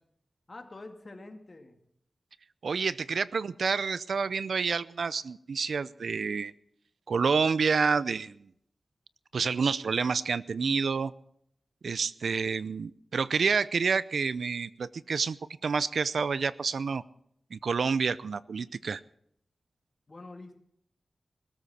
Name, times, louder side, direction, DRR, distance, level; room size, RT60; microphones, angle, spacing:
voice 1, 0.5-1.8 20.1-20.6, left 2 dB, 45° left, 5 dB, 2.4 m, -46 dB
voice 2, 2.6-6.5 7.1-8.4 9.3-11.1 11.8-15.4 15.6-17.0 17.5-19.0, right 5 dB, 90° right, 17 dB, 0.6 m, -28 dB
21.0 x 13.5 x 4.3 m, 0.70 s
wide cardioid pair, 70°, 0 cm